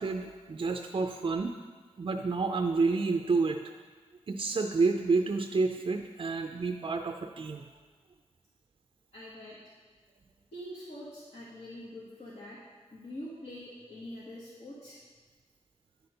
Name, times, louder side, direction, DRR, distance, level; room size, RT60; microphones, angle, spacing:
voice 1, 0.0-1.5 2.0-3.6 4.3-7.6, right 4 dB, 45° right, 4 dB, 0.4 m, -29 dB
voice 2, 9.1-9.6 10.5-12.6 12.9-15.0, left 1 dB, 65° left, -8 dB, 1.6 m, -44 dB
10.0 x 4.4 x 5.2 m, 1.5 s
wide cardioid pair, 110°, 12 cm